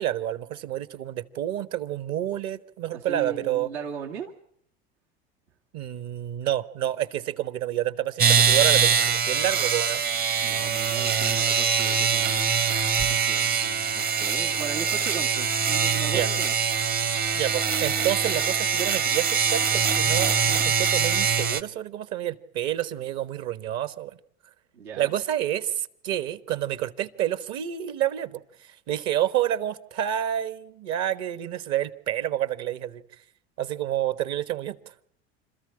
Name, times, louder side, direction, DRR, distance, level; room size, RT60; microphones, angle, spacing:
voice 1, 0.0-3.7 5.7-10.0 16.1-16.3 17.3-24.2 25.0-28.4 28.9-33.0 33.6-34.8, right 12 dB, 55° right, 1.4 m, -29 dB
voice 2, 2.9-4.3 10.4-12.6 13.1-16.5 24.7-25.1, right 7 dB, 90° right, 2.3 m, -38 dB
sound 1, 8.2-21.6, right 6 dB, 30° right, 0.8 m, -23 dB
27.0 x 14.0 x 9.9 m
hypercardioid pair, 95°, 32 cm